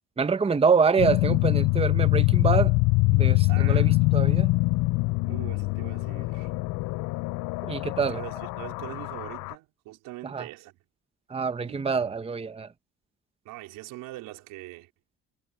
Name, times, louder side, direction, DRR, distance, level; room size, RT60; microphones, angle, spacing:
voice 1, 0.2-2.8 3.1-4.5 7.6-8.2 10.2-10.4 11.3-12.7, right 5 dB, 20° right, 0.9 m, -26 dB
sound 1, 1.0-9.5, left 24 dB, 80° left, 0.5 m, -24 dB
voice 2, 3.5-4.0 5.2-6.5 8.1-10.7 11.7-12.1 13.5-14.9, right 18 dB, 90° right, 3.5 m, -42 dB
cardioid pair, 90°, 32 cm